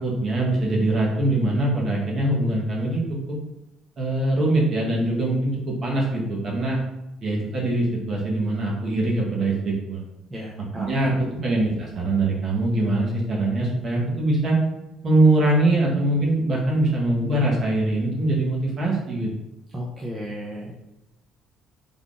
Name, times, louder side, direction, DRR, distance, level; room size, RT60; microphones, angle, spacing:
voice 1, 0.0-3.4 4.0-6.8 7.2-10.0 10.7-14.6 15.0-19.3, right 2 dB, 35° right, -3 dB, 1.0 m, -22 dB
voice 2, 10.3-10.9 11.2-11.3 19.7-20.8, equal, 15° right, -5 dB, 0.5 m, -34 dB
3.4 x 2.4 x 3.8 m, 0.92 s
cardioid pair, 165°, 0 cm